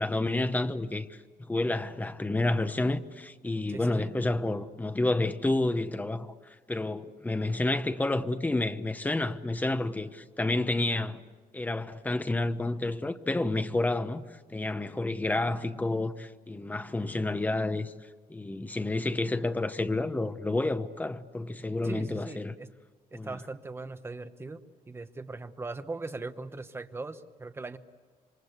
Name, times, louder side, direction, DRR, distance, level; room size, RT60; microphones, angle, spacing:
voice 1, 0.0-11.2 11.5-17.9 18.3-22.6 23.1-23.4, left 2 dB, 10° left, 0.9 m, -30 dB
voice 2, 3.7-4.1 21.8-22.7 23.1-27.8, right 3 dB, 15° right, 1.0 m, -40 dB
27.5 x 25.0 x 8.2 m
cardioid pair, 160°, 15 cm